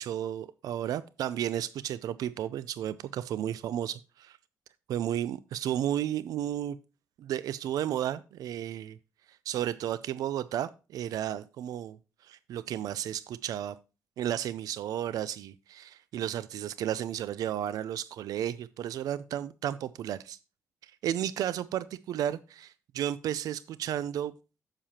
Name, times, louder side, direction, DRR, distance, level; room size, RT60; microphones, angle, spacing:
voice 1, 0.0-4.4 4.9-6.8 7.2-9.0 9.3-12.0 12.2-13.8 14.2-20.4 20.8-24.3, right 11 dB, 90° right, 0.4 m, -33 dB
9.7 x 7.4 x 2.8 m
wide cardioid pair, 165°, 6 cm